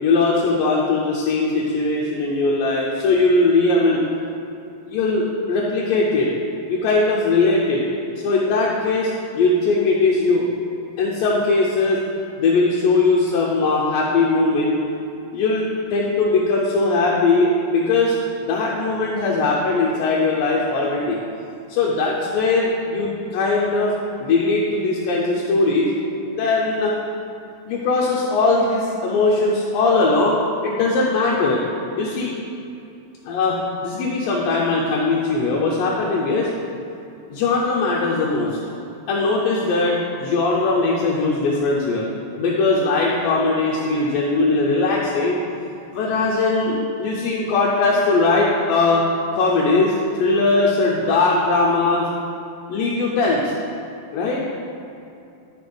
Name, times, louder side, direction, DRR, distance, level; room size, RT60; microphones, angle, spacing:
voice 1, 0.0-4.0 4.9-6.3 6.7-7.8 8.2-10.5 11.0-12.0 12.4-14.8 15.3-18.2 18.4-21.2 21.7-23.9 24.2-25.9 26.2-26.9 27.7-30.4 30.6-31.6 32.0-32.3 33.3-36.5 37.3-38.6 39.1-42.1 42.4-45.4 45.9-49.0 49.3-52.1 52.7-53.5 54.1-54.4, left 3 dB, 75° left, -4 dB, 2.2 m, -20 dB
11.0 x 4.7 x 5.2 m, 2.7 s
omnidirectional pair, 4.7 m